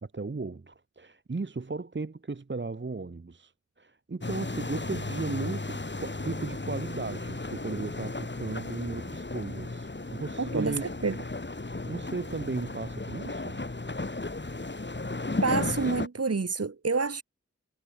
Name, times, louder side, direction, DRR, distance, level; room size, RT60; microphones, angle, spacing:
voice 1, 0.0-3.5 3.8-10.8 11.6-13.6, right 3 dB, 40° right, 1.2 m, -36 dB
sound 1, 4.2-16.1, left 2 dB, 40° left, 3.3 m, -35 dB
voice 2, 10.4-11.2 15.4-17.2, right 4 dB, 55° right, 1.6 m, -28 dB
wide cardioid pair, 60°, 29 cm